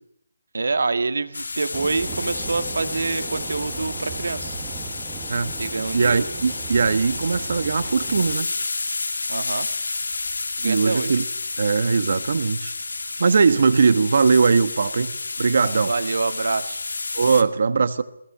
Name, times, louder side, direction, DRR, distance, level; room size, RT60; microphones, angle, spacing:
voice 1, 0.5-4.6 5.6-6.2 9.3-9.7 10.6-11.2 15.9-16.9, right 3 dB, 70° right, 11 dB, 1.9 m, -26 dB
sound 1, 1.3-17.4, left 3 dB, 90° left, 2.2 m, -30 dB
sound 2, 1.7-8.4, right 6 dB, 15° right, 1.3 m, -37 dB
voice 2, 5.9-8.5 10.6-11.2 11.6-12.7 13.2-15.1 15.4-15.9 17.1-18.0, right 5 dB, 45° right, 14 dB, 1.3 m, -20 dB
21.0 x 18.0 x 9.8 m, 0.73 s
hypercardioid pair, 180°, 0 cm